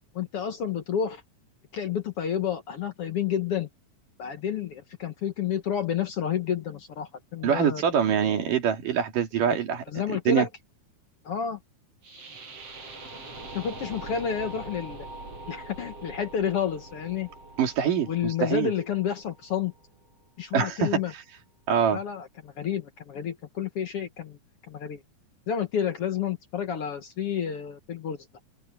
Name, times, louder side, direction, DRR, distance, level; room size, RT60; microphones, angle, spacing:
voice 1, 0.2-1.2 1.7-3.7 4.2-7.8 9.9-10.5 11.3-11.6 13.5-15.1 15.5-17.3 18.1-19.7 20.4-21.1 21.9-24.4 24.7-25.0 25.5-28.2, left 8 dB, 55° left, 1.8 m, -30 dB
voice 2, 7.4-9.8 10.1-10.5 17.6-18.7 20.5-21.2 21.7-22.0, right 8 dB, 80° right, 4.1 m, -24 dB
sound 1, 12.0-20.1, right 2 dB, 45° right, 8.0 m, -43 dB
open air
omnidirectional pair, 3.8 m